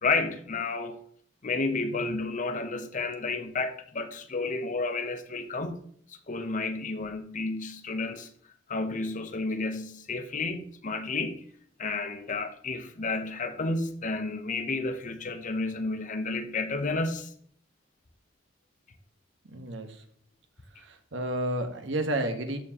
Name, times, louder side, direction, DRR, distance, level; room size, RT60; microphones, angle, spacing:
voice 1, 0.0-1.0 1.4-5.8 6.3-8.3 8.7-11.4 11.8-17.3, left 3 dB, 40° left, 0.8 m, -31 dB
voice 2, 19.5-20.0 20.8-22.6, right 1 dB, 70° right, 1.2 m, -31 dB
13.0 x 4.5 x 2.9 m
head